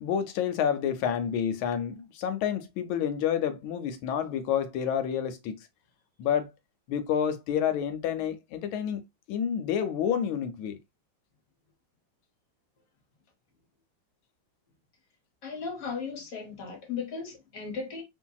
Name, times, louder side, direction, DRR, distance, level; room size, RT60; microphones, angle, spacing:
voice 1, 0.0-5.6 6.2-6.5 6.9-9.0 9.3-10.8, left 8 dB, 80° left, 1.3 m, -29 dB
voice 2, 15.4-18.0, left 5 dB, 55° left, 1.1 m, -36 dB
3.1 x 2.6 x 2.2 m
omnidirectional pair, 2.2 m